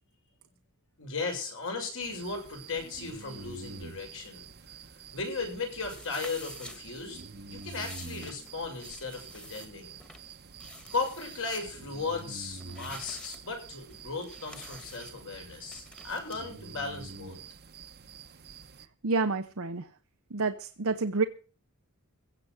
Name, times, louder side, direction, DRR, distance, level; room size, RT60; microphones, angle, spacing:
voice 1, 1.0-4.4 5.1-7.2 7.5-10.0 10.9-17.4, left 4 dB, 60° left, 2 dB, 6.9 m, -36 dB
sound 1, 2.0-18.9, right 4 dB, 45° right, 1.1 m, -47 dB
sound 2, 5.8-16.4, equal, 5° left, 1.8 m, -49 dB
voice 2, 19.0-19.9 20.3-21.2, right 4 dB, 65° right, 6 dB, 0.9 m, -29 dB
16.0 x 7.0 x 8.0 m, 0.38 s
head